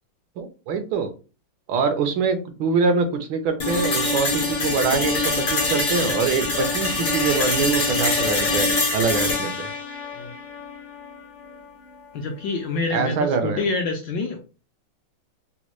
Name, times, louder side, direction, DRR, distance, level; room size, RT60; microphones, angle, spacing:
voice 1, 0.4-1.1 1.7-9.7 12.9-13.6, right 5 dB, 75° right, 1.3 m, -24 dB
sound 1, 3.6-11.6, left 2 dB, 50° left, 0.6 m, -24 dB
voice 2, 12.1-14.4, left 3 dB, 75° left, 1.0 m, -27 dB
4.1 x 2.1 x 3.0 m
omnidirectional pair, 2.3 m